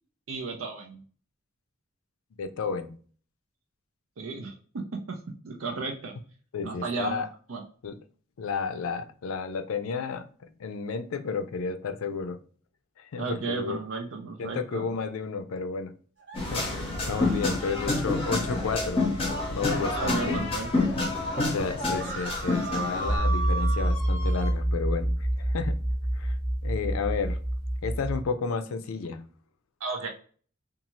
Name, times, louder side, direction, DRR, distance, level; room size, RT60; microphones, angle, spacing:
voice 1, 0.3-1.0 4.2-4.5 5.1-5.2 5.4-6.1 6.6-7.6 13.2-14.9 19.9-20.9 29.8-30.1, right 4 dB, 75° right, 2 dB, 0.5 m, -34 dB
voice 2, 2.4-2.9 6.5-7.3 7.8-8.0 8.4-10.2 10.6-12.4 13.0-13.8 14.4-15.9 16.5-16.6 17.1-19.0 19.5-20.4 21.5-25.1 25.4-25.8 26.2-26.3 26.6-27.4 27.8-29.2, left 5 dB, 85° left, 9 dB, 0.4 m, -32 dB
sound 1, 16.2-20.7 21.2-21.3 21.5-24.5, right 3 dB, 55° right, 0.9 m, -38 dB
sound 2, 16.3-23.2, left 2 dB, 25° left, 0.6 m, -28 dB
sound 3, 23.0-28.2, right 1 dB, 25° right, 0.6 m, -27 dB
2.6 x 2.4 x 2.8 m, 0.43 s
head